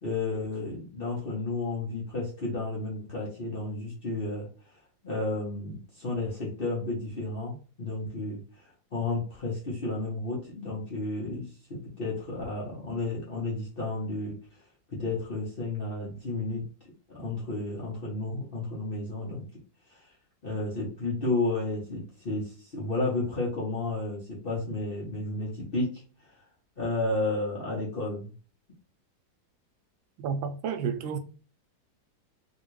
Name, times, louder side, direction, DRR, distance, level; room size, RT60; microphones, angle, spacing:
voice 1, 0.0-4.5 5.0-8.4 8.9-14.4 14.9-16.6 17.1-19.4 19.9-20.0 20.4-25.9 26.8-28.3, left 2 dB, 40° left, 0.9 m, -32 dB
voice 2, 30.2-31.2, right 6 dB, 90° right, 1.4 m, -31 dB
3.2 x 2.8 x 3.0 m
omnidirectional pair, 2.1 m